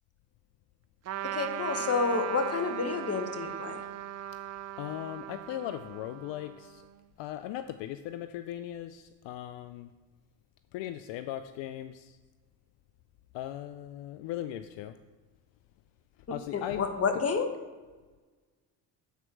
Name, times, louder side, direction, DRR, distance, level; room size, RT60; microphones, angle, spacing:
Trumpet, 1.0-6.9, right 10 dB, 35° right, 0.4 m, -38 dB
voice 1, 1.2-3.8 16.5-17.5, left 4 dB, 30° left, 7 dB, 1.2 m, -29 dB
voice 2, 4.8-6.8 7.2-9.9 10.7-12.2 13.3-15.0 16.3-16.8, left 12 dB, 70° left, 11 dB, 0.5 m, -38 dB
8.2 x 4.5 x 6.1 m, 1.3 s
supercardioid pair, 70°, 46 cm